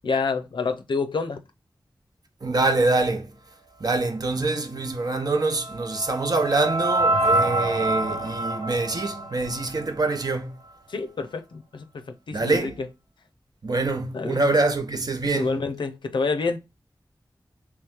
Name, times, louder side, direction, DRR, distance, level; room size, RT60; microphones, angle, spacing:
voice 1, 0.0-1.4 10.9-12.9 14.1-14.4 15.3-16.6, left 4 dB, 90° left, 0.5 m, -28 dB
voice 2, 2.4-3.3 3.8-10.6 12.3-12.7 13.6-15.5, right 3 dB, 55° right, 0.7 m, -25 dB
sound 1, 5.2-10.3, right 1 dB, 75° right, 1.3 m, -26 dB
3.1 x 3.1 x 3.5 m
cardioid pair, 50°, 8 cm